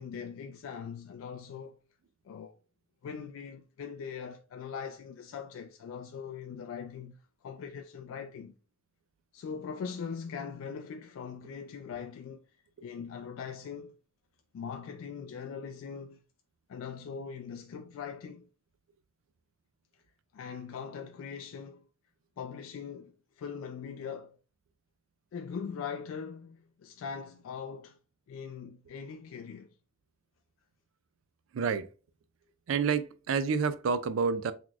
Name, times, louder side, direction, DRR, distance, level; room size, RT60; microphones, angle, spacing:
voice 1, 0.0-1.8 2.2-2.6 3.0-8.5 9.3-12.4 12.8-14.0 14.5-16.2 16.7-18.5 20.3-21.9 22.4-24.4 25.3-28.0 28.3-29.7, left 6 dB, 90° left, 0.3 m, -41 dB
voice 2, 31.5-31.9 32.7-34.5, right 5 dB, 80° right, 0.4 m, -28 dB
3.8 x 2.9 x 2.3 m
head